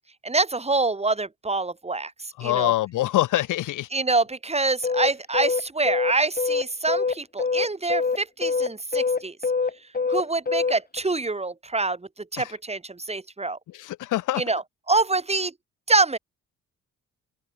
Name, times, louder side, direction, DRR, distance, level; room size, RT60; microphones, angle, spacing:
voice 1, 0.2-2.7 3.9-9.4 10.1-13.6 14.4-14.6 14.9-15.5 15.9-16.2, right 3 dB, 20° right, 4.0 m, -25 dB
voice 2, 2.4-3.9 12.4-12.5 13.7-14.4, left 15 dB, 90° left, 7.7 m, -25 dB
sound 1, 4.8-11.0, left 4 dB, 30° left, 3.7 m, -24 dB
open air
cardioid pair, 90°, 30 cm